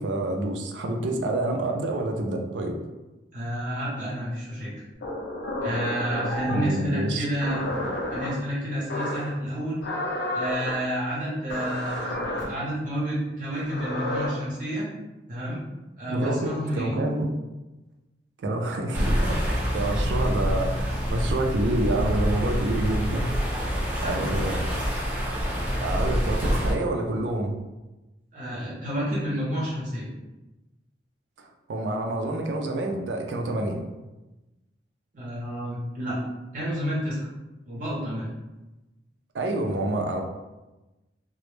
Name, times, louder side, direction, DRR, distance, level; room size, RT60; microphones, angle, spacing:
voice 1, 0.0-2.8 6.5-7.3 16.1-17.3 18.4-23.3 24.0-24.6 25.8-27.5 31.4-33.8 39.3-40.2, right 1 dB, 85° right, 2 dB, 0.4 m, -28 dB
voice 2, 3.3-4.7 5.6-7.6 8.1-9.8 10.3-14.9 15.3-15.6 16.0-16.9 24.0-24.5 28.3-30.1 35.1-36.2 36.5-37.3 37.7-38.3, equal, 50° right, -8 dB, 0.7 m, -30 dB
sound 1, 5.0-6.7 7.4-8.3 8.9-9.3 9.8-10.7 11.5-12.4 13.5-14.3, left 1 dB, 70° left, 0.5 m, -31 dB
sound 2, 18.9-26.7, equal, 10° right, 0.5 m, -26 dB
2.0 x 2.0 x 3.0 m, 1.1 s
head